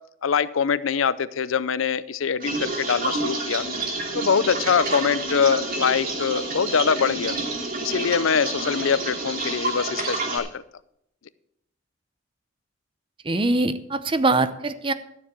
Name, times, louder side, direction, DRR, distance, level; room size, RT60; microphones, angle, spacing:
voice 1, 0.2-3.6 4.1-7.3 7.8-10.6, left 6 dB, 80° left, 17 dB, 0.6 m, -23 dB
sound 1, 2.4-10.4, right 2 dB, 45° right, 2.8 m, -29 dB
voice 2, 13.3-14.9, right 2 dB, 25° right, 12 dB, 0.7 m, -22 dB
13.0 x 7.2 x 6.8 m, 0.77 s
head